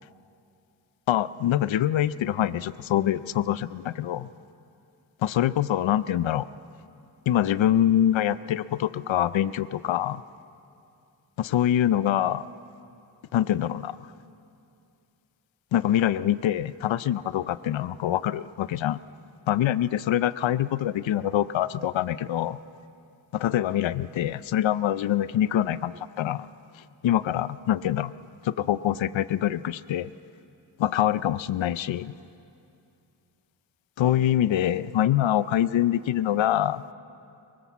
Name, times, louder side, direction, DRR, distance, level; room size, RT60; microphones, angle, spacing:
voice 1, 1.1-4.3 5.2-6.5 7.3-10.2 11.4-12.4 13.3-14.0 15.7-19.0 19.5-22.6 23.3-26.5 27.0-28.1 28.4-30.1 30.8-32.1 34.0-36.8, left 11 dB, 90° left, 15 dB, 0.7 m, -25 dB
24.0 x 23.0 x 7.2 m, 2.6 s
wide cardioid pair, 110°, 44 cm